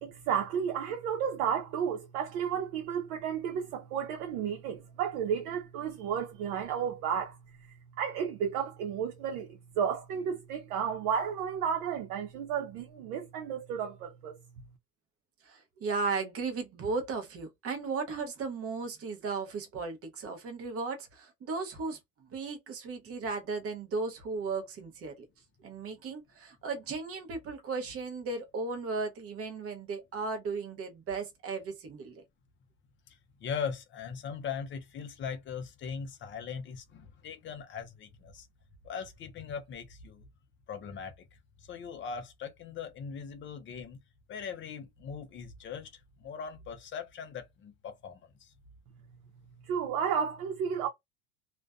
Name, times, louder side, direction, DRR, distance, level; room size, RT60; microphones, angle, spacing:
voice 1, 0.0-14.4 49.6-50.9, right 8 dB, 80° right, 0.7 m, -32 dB
voice 2, 15.4-22.0 22.3-25.1 25.6-32.2, right 4 dB, 30° right, 0.7 m, -36 dB
voice 3, 33.1-38.5 38.8-40.3 40.7-41.1 41.7-44.0 44.3-48.5, left 6 dB, 30° left, 0.4 m, -40 dB
2.4 x 2.2 x 2.3 m
supercardioid pair, 125°, 44 cm